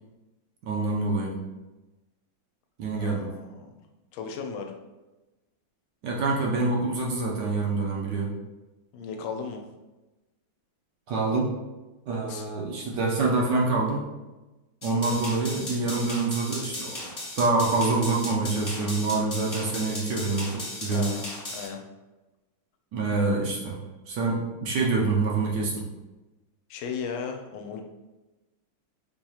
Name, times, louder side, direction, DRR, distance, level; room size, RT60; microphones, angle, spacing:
voice 1, 0.6-1.4 2.8-3.3 6.0-8.3 11.1-11.5 12.1-14.0 14.8-21.1 22.9-23.8 24.1-25.9, right 3 dB, 70° right, -1 dB, 1.1 m, -26 dB
voice 2, 2.9-3.7 4.1-4.8 8.9-9.7 12.3-12.5 20.9-21.8 26.7-27.9, left 6 dB, 90° left, 3 dB, 1.4 m, -36 dB
sound 1, 14.8-21.7, left 1 dB, 30° left, 1.3 m, -36 dB
4.8 x 2.8 x 2.3 m, 1.1 s
omnidirectional pair, 2.2 m